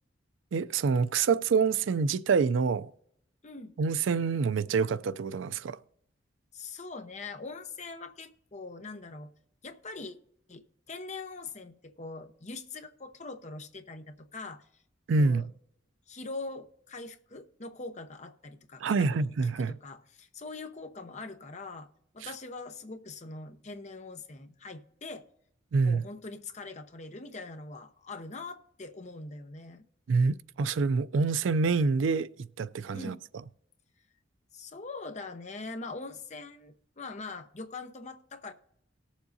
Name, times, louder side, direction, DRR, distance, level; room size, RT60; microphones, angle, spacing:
voice 1, 0.5-2.9 3.8-5.8 15.1-15.4 18.8-19.7 25.7-26.0 30.1-32.3 32.6-33.2, right 4 dB, 75° right, 0.4 m, -26 dB
voice 2, 3.4-3.7 6.5-9.3 9.6-10.2 10.5-14.6 15.2-15.5 16.1-19.3 19.6-21.9 22.1-25.3 25.8-29.8 32.9-33.2 34.5-38.5, left 3 dB, 35° left, 0.8 m, -42 dB
18.5 x 7.2 x 2.7 m
head